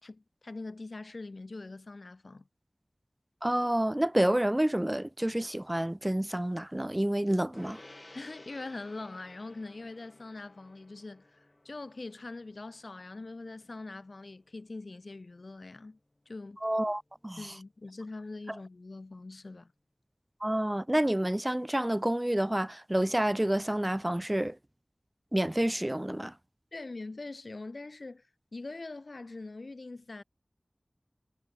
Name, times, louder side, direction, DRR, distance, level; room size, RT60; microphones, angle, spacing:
voice 1, 0.0-2.5 8.1-16.0 16.3-16.6 17.4-19.7 26.7-28.3 28.5-30.2, left 3 dB, 70° left, 4.0 m, -43 dB
voice 2, 3.4-7.8 16.6-17.5 20.4-24.6 25.3-26.3, right 1 dB, 20° right, 0.6 m, -29 dB
Gong, 7.5-17.2, left 1 dB, 35° left, 5.6 m, -57 dB
wide cardioid pair, 60°, 0 cm